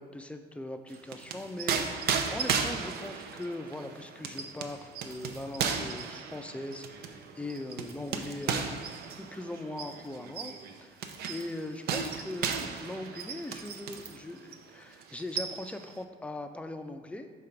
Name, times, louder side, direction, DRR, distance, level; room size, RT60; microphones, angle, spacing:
voice 1, 0.0-8.7 9.2-10.5 10.8-11.0 11.3-17.3, left 1 dB, 5° left, 6 dB, 0.4 m, -40 dB
sound 1, 0.9-14.2 14.5-14.7 15.0-15.9, right 6 dB, 70° right, 0.6 m, -35 dB
5.0 x 4.1 x 5.8 m, 1.5 s
cardioid pair, 110°, 17 cm